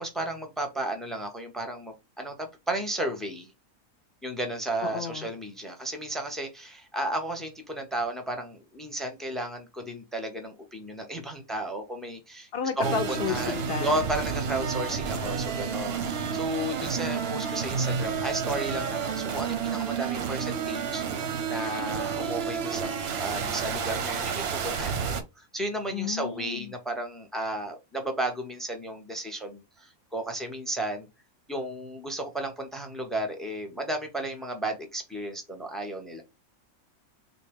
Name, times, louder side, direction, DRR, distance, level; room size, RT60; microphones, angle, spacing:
voice 1, 0.0-3.5 4.2-12.5 12.8-22.9 23.2-31.1 31.5-36.2, right 1 dB, ahead, 0.4 m, -33 dB
voice 2, 4.8-5.3 12.5-14.0 25.9-26.7, left 7 dB, 60° left, 0.6 m, -32 dB
sound 1, 12.8-25.2, right 6 dB, 60° right, 0.7 m, -30 dB
3.9 x 2.1 x 3.4 m
omnidirectional pair, 1.5 m